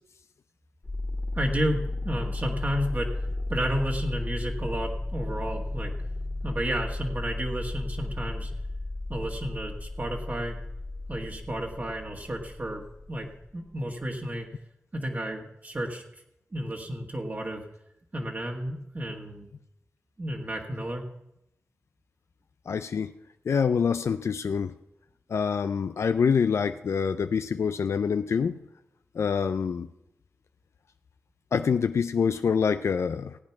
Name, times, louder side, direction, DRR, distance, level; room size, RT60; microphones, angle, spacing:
sound 1, 0.8-13.5, left 2 dB, 40° left, 2.1 m, -34 dB
voice 1, 1.3-3.1 3.5-5.9 6.4-8.5 9.1-10.6 11.1-13.3 13.5-14.5 14.9-16.0 16.5-17.6 18.1-19.5 20.2-21.0, equal, 40° right, 0 dB, 1.7 m, -32 dB
voice 2, 22.7-23.1 23.5-24.7 25.3-28.6 29.2-29.9 31.5-33.4, left 6 dB, 90° left, 9 dB, 0.4 m, -26 dB
16.0 x 8.8 x 5.9 m, 0.83 s
wide cardioid pair, 70°, 5 cm